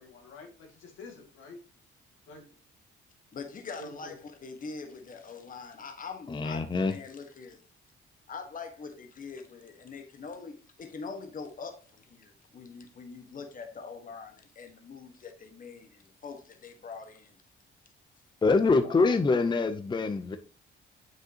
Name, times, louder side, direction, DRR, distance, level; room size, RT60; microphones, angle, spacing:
voice 1, 0.0-1.6 2.3-2.5 3.8-4.2 18.8-19.3, left 3 dB, 85° left, 2.3 m, -46 dB
voice 2, 3.3-7.6 8.3-17.4, left 5 dB, 45° left, 1.4 m, -43 dB
voice 3, 6.3-6.9 18.4-20.4, left 3 dB, 25° left, 0.6 m, -25 dB
7.6 x 6.3 x 2.9 m
cardioid pair, 90°, 20 cm